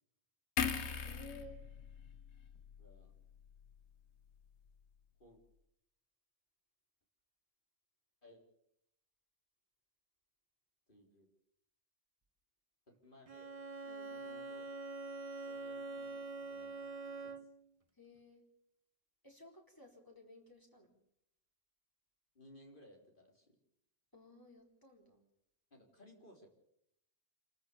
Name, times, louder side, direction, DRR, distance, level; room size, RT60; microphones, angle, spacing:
sound 1, 0.6-3.9 4.3-4.5, left 6 dB, 80° left, 1.5 m, -41 dB
voice 1, 1.0-1.6 13.8-14.1 17.9-18.4 19.2-21.0 24.1-25.2, left 1 dB, 20° left, 0 dB, 4.3 m, -56 dB
voice 2, 2.8-3.1 5.2-5.4 8.2-8.4 10.9-11.3 12.9-13.6 14.1-14.7 15.5-17.5 22.3-23.6 25.7-26.5, left 1 dB, 50° left, 1 dB, 4.2 m, -61 dB
Bowed string instrument, 13.3-17.7, right 3 dB, 35° right, 1.1 m, -45 dB
28.0 x 14.0 x 7.0 m, 0.78 s
omnidirectional pair, 1.1 m